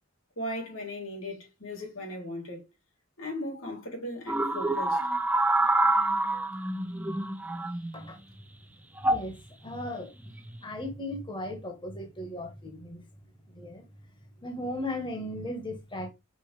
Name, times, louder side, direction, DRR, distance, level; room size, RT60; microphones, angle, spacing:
voice 1, 0.4-2.6 3.2-5.0, left 1 dB, 85° left, 3.7 m, -37 dB
sound 1, 4.3-8.1 9.0-9.3 10.3-10.6, right 2 dB, 10° right, 0.7 m, -27 dB
voice 2, 9.0-10.1 10.6-13.0 13.5-13.8 14.4-16.1, left 1 dB, 25° left, 1.6 m, -37 dB
5.6 x 4.8 x 4.9 m
head